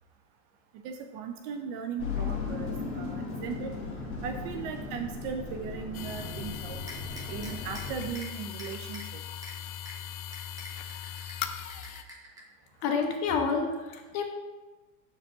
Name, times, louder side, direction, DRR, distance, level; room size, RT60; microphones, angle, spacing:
voice 1, 0.8-3.7 4.2-6.8 7.3-9.2, right 6 dB, 35° right, 5 dB, 0.4 m, -38 dB
sound 1, 2.0-8.1, left 4 dB, 30° left, 1.6 m, -36 dB
sound 2, 5.9-12.0, left 10 dB, 75° left, 0.7 m, -39 dB
sound 3, 6.9-7.8 8.1-8.3 8.6-9.0 9.4-9.5 9.9-10.0 10.3-11.3 11.7-12.4, equal, 10° right, 0.9 m, -45 dB
voice 2, 12.8-14.2, left 5 dB, 45° left, 3 dB, 1.0 m, -28 dB
7.1 x 4.6 x 3.7 m, 1.2 s
supercardioid pair, 135°, 44 cm